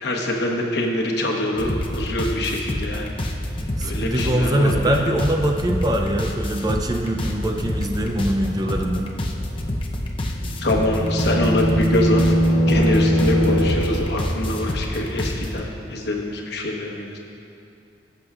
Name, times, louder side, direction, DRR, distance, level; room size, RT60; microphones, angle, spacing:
voice 1, 0.0-3.1 3.8-5.0 10.6-17.2, left 1 dB, 65° left, -1 dB, 1.1 m, -25 dB
sound 1, 1.6-15.6, left 1 dB, 30° left, 0.7 m, -27 dB
voice 2, 3.8-9.1, right 1 dB, 20° right, 3 dB, 0.5 m, -23 dB
sound 2, 10.4-14.3, equal, 85° right, 2.0 m, -21 dB
16.5 x 7.8 x 2.4 m, 2.6 s
head